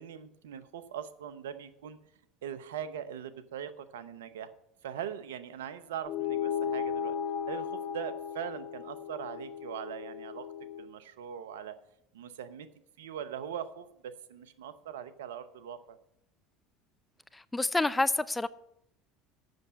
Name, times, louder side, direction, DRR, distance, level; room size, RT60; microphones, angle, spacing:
voice 1, 0.0-2.0 2.4-4.5 4.8-7.2 7.5-10.5 10.8-11.8 12.1-12.7 13.0-16.0, right 9 dB, 80° right, 0.7 m, -41 dB
sound 1, 6.1-10.9, left 7 dB, 45° left, 1.0 m, -35 dB
voice 2, 17.3-18.5, left 2 dB, 15° left, 0.5 m, -28 dB
7.9 x 6.7 x 8.3 m
hypercardioid pair, 75°, 0 cm